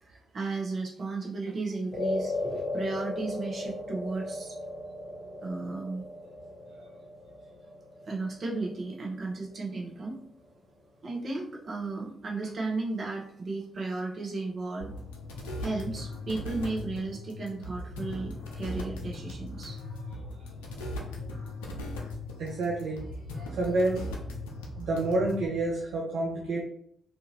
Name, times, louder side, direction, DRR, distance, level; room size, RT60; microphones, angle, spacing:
voice 1, 0.0-4.6 5.4-6.0 8.1-10.2 11.0-14.9 15.6-19.8, right 3 dB, 50° right, -1 dB, 0.9 m, -34 dB
sound 1, 1.9-10.4, left 2 dB, 20° left, 1.3 m, -37 dB
sound 2, 14.8-25.5, left 2 dB, 80° left, 0.5 m, -39 dB
voice 2, 22.4-23.1 23.4-24.1 24.8-26.6, right 2 dB, 70° right, -2 dB, 0.4 m, -29 dB
2.6 x 2.6 x 2.8 m, 0.70 s
hypercardioid pair, 40°, 0 cm